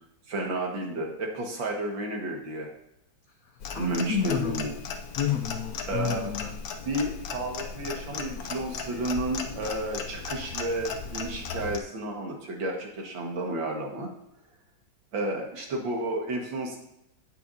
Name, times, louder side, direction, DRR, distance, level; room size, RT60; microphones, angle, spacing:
voice 1, 0.3-2.7 3.8-4.7 5.9-6.2 6.8-14.1 15.1-16.8, right 1 dB, 70° right, 0 dB, 2.4 m, -31 dB
voice 2, 3.4-4.7 5.1-6.6, left 8 dB, 75° left, 6 dB, 0.8 m, -30 dB
Clock, 3.6-11.8, left 5 dB, 60° left, 1.1 m, -37 dB
17.0 x 6.4 x 2.7 m, 0.80 s
omnidirectional pair, 2.2 m